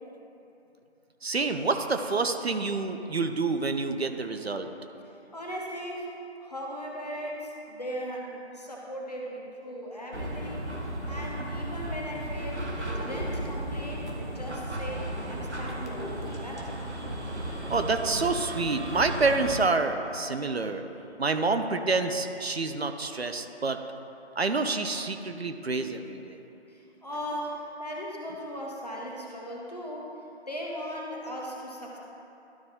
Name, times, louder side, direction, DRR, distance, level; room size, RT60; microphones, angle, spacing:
voice 1, 1.2-4.7 16.3-16.4 17.4-20.8 21.2-23.8 24.4-26.4, right 3 dB, 65° right, 7 dB, 0.6 m, -28 dB
voice 2, 5.0-6.1 6.4-10.7 11.0-16.8 26.7-30.2 30.5-32.0, equal, 35° left, -2 dB, 1.0 m, -38 dB
sound 1, 10.1-19.6, right 1 dB, 90° right, 1.1 m, -35 dB
12.0 x 4.1 x 3.7 m, 2.9 s
figure-of-eight pair, 165°, 34 cm